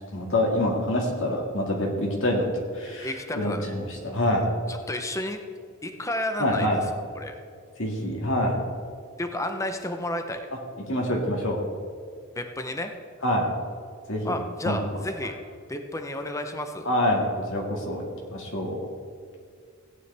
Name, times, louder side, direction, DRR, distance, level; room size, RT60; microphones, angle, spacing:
voice 1, 0.1-4.5 6.4-6.8 7.8-8.6 10.9-11.6 13.2-13.5 14.1-14.8 16.8-17.2 17.5-18.0 18.3-18.8, left 1 dB, 60° left, -1 dB, 2.0 m, -26 dB
voice 2, 3.0-3.7 4.7-5.4 5.8-7.4 9.2-10.5 12.4-12.9 14.2-15.4 15.7-16.9, left 1 dB, 15° left, 6 dB, 0.7 m, -31 dB
17.0 x 9.5 x 3.4 m, 2.1 s
head